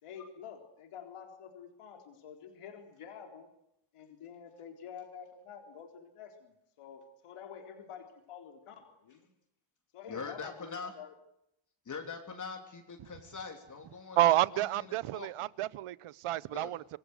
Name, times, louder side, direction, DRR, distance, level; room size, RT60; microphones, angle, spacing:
voice 1, 0.0-3.5 3.9-9.3 9.9-11.1, left 7 dB, 85° left, 4.0 m, -48 dB
voice 2, 10.1-10.9 11.8-14.6 14.9-15.3 16.5-16.7, left 5 dB, 35° left, 3.5 m, -43 dB
voice 3, 14.2-17.0, right 14 dB, 85° right, 0.9 m, -29 dB
27.0 x 21.5 x 8.1 m
cardioid pair, 150°, 50 cm